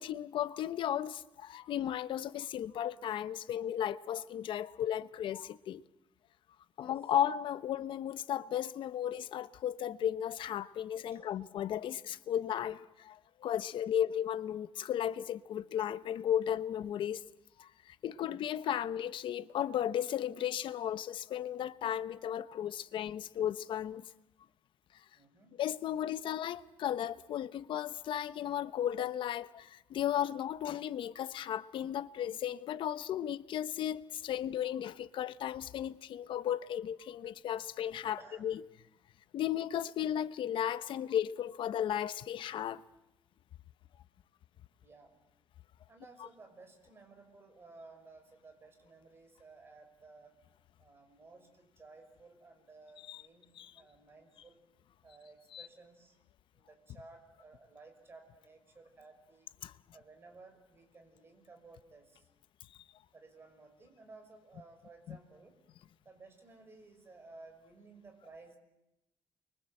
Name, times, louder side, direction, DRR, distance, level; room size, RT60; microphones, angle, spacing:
voice 1, 0.0-5.8 6.8-17.2 17.6-24.0 25.6-38.6 39.3-42.8 53.1-53.2 53.6-53.7 55.5-55.7 59.6-59.7 65.1-65.2, left 10 dB, 75° left, 1.0 m, -35 dB
voice 2, 6.8-7.1 11.1-11.3 13.7-14.1 18.0-18.4 25.1-25.6 38.2-38.5 44.8-45.3 45.9-50.4 50.8-54.6 55.0-56.2 56.5-59.5 59.9-62.3 63.1-65.6 66.0-68.6, right 3 dB, 25° right, 5.7 m, -56 dB
29.5 x 23.5 x 7.8 m
cardioid pair, 145°, 9 cm